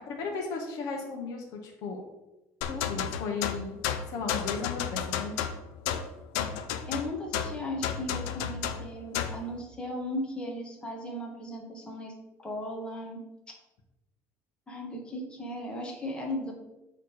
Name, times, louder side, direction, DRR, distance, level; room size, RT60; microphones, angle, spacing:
voice 1, 0.0-2.0 2.7-3.8 4.1-5.3, left 4 dB, 65° left, 1 dB, 1.3 m, -35 dB
sound 1, 2.6-9.4, left 8 dB, 85° left, 0.6 m, -32 dB
voice 2, 6.9-12.1 12.4-13.2 14.7-16.5, left 1 dB, 15° left, 0 dB, 1.5 m, -36 dB
8.2 x 3.4 x 4.8 m, 0.97 s
cardioid pair, 125°, 7 cm